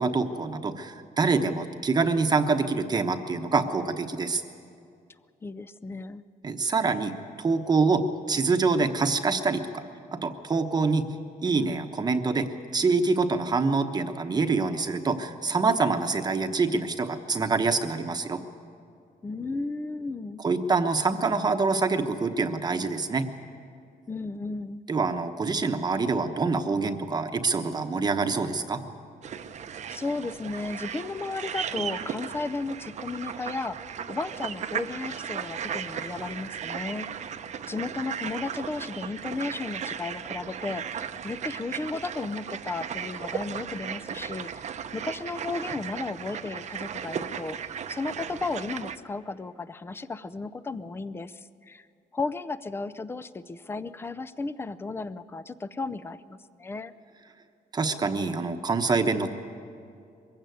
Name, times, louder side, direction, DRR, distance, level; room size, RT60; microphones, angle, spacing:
voice 1, 0.0-4.4 6.4-8.0 8.3-9.8 10.1-11.1 11.4-12.5 12.7-18.4 20.4-23.3 24.9-28.8 57.7-59.3, right 4 dB, 25° right, 7 dB, 1.0 m, -25 dB
voice 2, 5.4-6.2 19.2-20.4 24.1-24.8 29.9-33.8 34.1-37.1 37.7-47.6 47.9-51.9 52.1-56.9, left 3 dB, 15° left, 14 dB, 0.5 m, -34 dB
sound 1, 29.2-49.0, right 8 dB, 50° right, 0.8 m, -36 dB
22.5 x 16.0 x 9.3 m, 2.5 s
cardioid pair, 160°, 16 cm